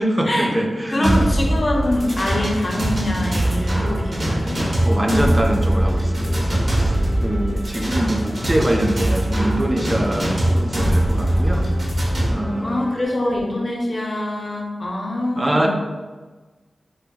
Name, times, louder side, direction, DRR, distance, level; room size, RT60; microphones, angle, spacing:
voice 1, 0.0-1.2 4.9-11.7 12.3-12.9 15.4-15.7, right 1 dB, 25° right, 2 dB, 0.4 m, -23 dB
voice 2, 0.9-4.6 12.6-15.7, left 1 dB, 45° left, 0 dB, 0.5 m, -24 dB
sound 1, 1.0-12.3, right 1 dB, 55° right, 0.6 m, -21 dB
sound 2, 1.7-13.1, equal, 75° right, 1.2 m, -37 dB
2.7 x 2.2 x 2.2 m, 1.3 s
cardioid pair, 50°, 0 cm